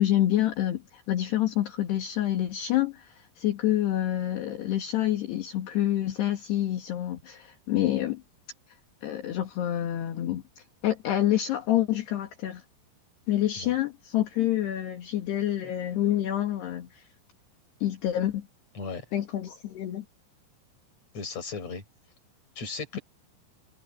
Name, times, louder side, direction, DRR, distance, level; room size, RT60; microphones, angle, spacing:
voice 1, 0.0-8.2 9.0-12.6 13.3-17.1 17.8-18.5 19.1-20.1, left 13 dB, 60° left, 3.9 m, -27 dB
voice 2, 21.1-21.8 22.6-23.0, left 4 dB, 35° left, 6.2 m, -36 dB
omnidirectional pair, 5.8 m